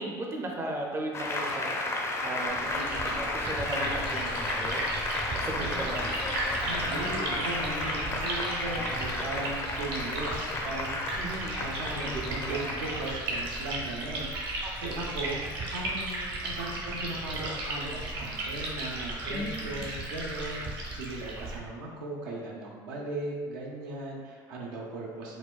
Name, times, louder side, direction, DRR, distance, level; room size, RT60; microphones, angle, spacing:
voice 1, 0.0-1.8 2.2-4.9 5.3-6.3 8.8-9.0 11.2-11.6 12.0-12.7 14.6-14.9 19.3-19.9, right 1 dB, 25° right, 0 dB, 0.5 m, -37 dB
Applause, 1.1-14.1, left 2 dB, 25° left, 0.4 m, -33 dB
Liquid, 2.5-21.6, right 2 dB, 50° right, 0.9 m, -35 dB
voice 2, 6.6-11.2 11.4-25.4, right 2 dB, 80° right, -2 dB, 0.6 m, -38 dB
4.1 x 2.2 x 2.4 m, 1.6 s
hypercardioid pair, 85°, 11 cm